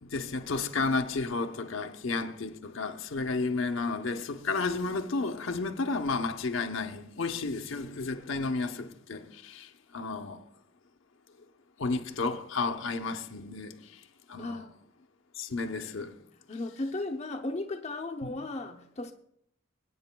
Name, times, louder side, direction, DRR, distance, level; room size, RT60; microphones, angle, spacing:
voice 1, 0.0-10.4 11.8-13.8 14.3-14.6 15.3-16.2 18.2-18.3, left 3 dB, 80° left, 0.8 m, -32 dB
voice 2, 14.4-14.8 16.5-19.1, left 2 dB, 35° left, 0.7 m, -35 dB
23.5 x 8.7 x 2.2 m
head